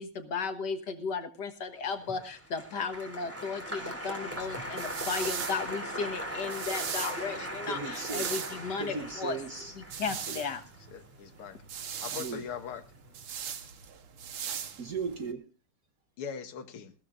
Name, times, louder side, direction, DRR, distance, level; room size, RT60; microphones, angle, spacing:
voice 1, 0.0-9.4 10.0-10.6, left 5 dB, 55° left, 7 dB, 1.9 m, -35 dB
Applause, 1.9-12.3 12.6-13.2, equal, 5° right, 3.1 m, -40 dB
sound 1, 4.3-15.3, right 8 dB, 80° right, 2.1 m, -40 dB
voice 2, 7.7-8.3 8.7-9.8 12.2-12.4 14.8-15.5, right 5 dB, 55° right, 6 dB, 1.2 m, -37 dB
voice 3, 10.9-11.6 12.0-12.8 16.2-16.9, left 7 dB, 80° left, 9 dB, 2.1 m, -41 dB
21.0 x 16.0 x 2.5 m, 0.32 s
omnidirectional pair, 2.4 m